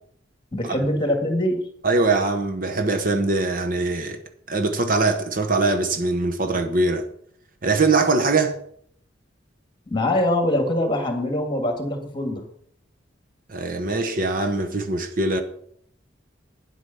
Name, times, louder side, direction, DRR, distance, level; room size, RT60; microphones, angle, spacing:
voice 1, 0.5-1.6 9.9-12.5, left 1 dB, 25° left, 2.0 m, -23 dB
voice 2, 1.8-4.2 4.5-7.0 7.6-8.6 13.5-15.4, right 3 dB, 45° right, 1.0 m, -22 dB
9.9 x 8.1 x 5.7 m
head